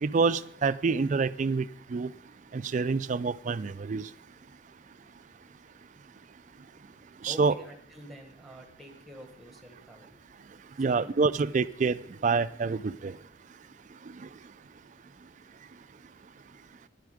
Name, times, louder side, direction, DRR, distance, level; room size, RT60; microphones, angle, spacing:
voice 1, 0.0-2.1 2.5-4.1 7.2-7.5 10.8-12.0 12.2-13.1, right 4 dB, 40° right, 14 dB, 0.3 m, -27 dB
voice 2, 7.2-10.2 10.8-11.5 13.0-13.2, equal, ahead, 4 dB, 1.4 m, -48 dB
11.0 x 9.6 x 5.0 m, 0.71 s
head